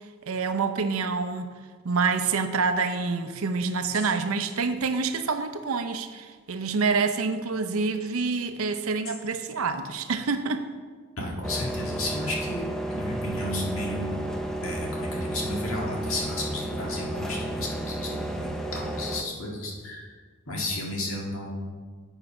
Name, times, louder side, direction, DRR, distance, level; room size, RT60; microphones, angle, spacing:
voice 1, 0.3-1.5 1.8-10.7, right 4 dB, 80° right, 9 dB, 0.6 m, -27 dB
voice 2, 11.2-12.6 12.9-14.2 14.6-20.1 20.5-21.7, left 1 dB, 75° left, -2 dB, 1.8 m, -33 dB
sound 1, 11.4-19.2, right 1 dB, ahead, 0.5 m, -32 dB
8.1 x 5.5 x 4.8 m, 1.5 s
head